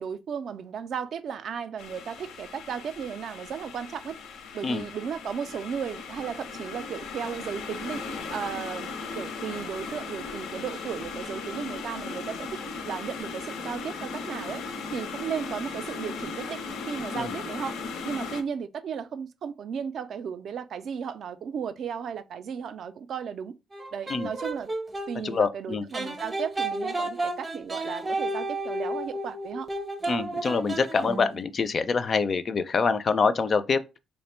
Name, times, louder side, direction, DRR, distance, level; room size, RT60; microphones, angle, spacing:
voice 1, 0.0-4.2 4.5-8.0 8.3-12.6 12.8-14.6 14.9-16.6 16.9-17.8 18.0-23.5 23.9-24.7 25.1-29.7, right 7 dB, 60° right, 0.4 m, -35 dB
sound 1, 1.8-18.4, left 4 dB, 85° left, 0.6 m, -37 dB
sound 2, 23.7-25.1 25.9-31.4, right 2 dB, 20° right, 0.7 m, -32 dB
voice 2, 25.2-25.8 30.1-33.8, left 5 dB, 40° left, 0.4 m, -25 dB
3.2 x 2.1 x 4.2 m
cardioid pair, 125°, 0 cm